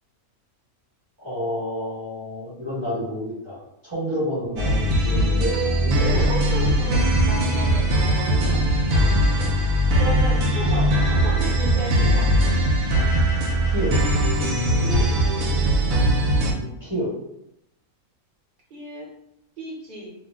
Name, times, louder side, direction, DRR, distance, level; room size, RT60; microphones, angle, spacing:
voice 1, 1.2-6.3 13.7-14.0 16.5-17.1, equal, 25° right, -10 dB, 1.1 m, -29 dB
sound 1, 4.6-16.5, equal, 70° right, 0.9 m, -20 dB
voice 2, 6.0-9.2 9.9-12.3 14.8-15.1 18.7-19.1 19.6-20.1, right 1 dB, 55° right, -4 dB, 0.5 m, -34 dB
2.5 x 2.0 x 3.4 m, 0.81 s
omnidirectional pair, 1.6 m